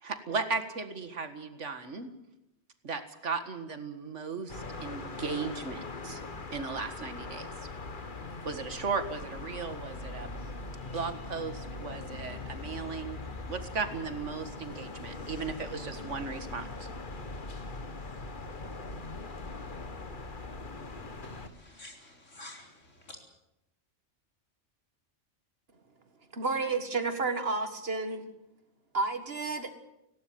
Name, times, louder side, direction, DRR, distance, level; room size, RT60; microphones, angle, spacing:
voice 1, 0.0-2.1 2.8-6.2 6.5-7.7 8.4-10.3 10.9-13.2 13.5-16.9, right 4 dB, 75° right, 9 dB, 2.1 m, -36 dB
sound 1, 4.5-21.5, left 3 dB, 45° left, 1.6 m, -41 dB
voice 2, 21.2-23.2, left 1 dB, 80° left, 2 dB, 4.5 m, -49 dB
voice 3, 26.3-28.2 28.9-29.7, right 3 dB, 55° right, 9 dB, 2.0 m, -31 dB
18.5 x 17.5 x 9.3 m, 0.87 s
omnidirectional pair, 1.3 m